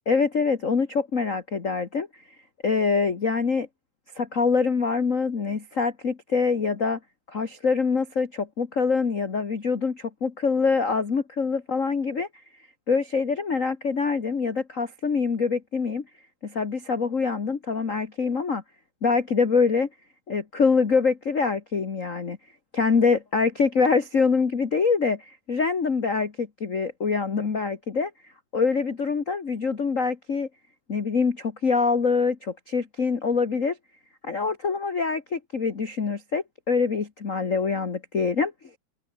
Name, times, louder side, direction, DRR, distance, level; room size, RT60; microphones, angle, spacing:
voice 1, 0.0-2.1 2.6-3.7 4.1-7.0 7.3-12.3 12.9-16.0 16.4-18.6 19.0-19.9 20.3-22.4 22.7-28.1 28.5-30.5 30.9-33.8 34.2-38.5, left 5 dB, 35° left, 1.5 m, -24 dB
omnidirectional pair, 3.5 m